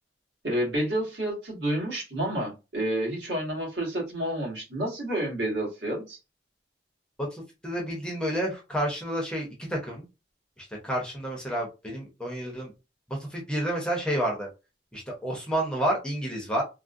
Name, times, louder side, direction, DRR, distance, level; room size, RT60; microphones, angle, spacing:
voice 1, 0.4-6.2, right 1 dB, 65° right, -3 dB, 1.7 m, -29 dB
voice 2, 7.2-10.0 10.6-12.7 13.1-14.5 14.9-16.6, right 1 dB, 5° left, -1 dB, 0.7 m, -30 dB
3.6 x 2.1 x 2.5 m, 0.27 s
head